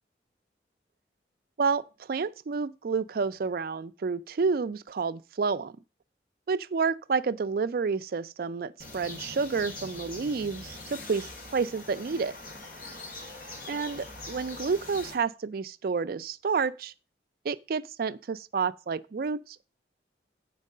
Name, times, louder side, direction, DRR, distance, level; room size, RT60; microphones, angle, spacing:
voice 1, 2.1-5.7 6.5-12.3 13.7-16.9 17.4-19.6, right 5 dB, 55° right, 0.4 m, -30 dB
sound 1, 8.8-15.1, left 2 dB, 50° left, 2.1 m, -42 dB
8.2 x 4.6 x 6.5 m
head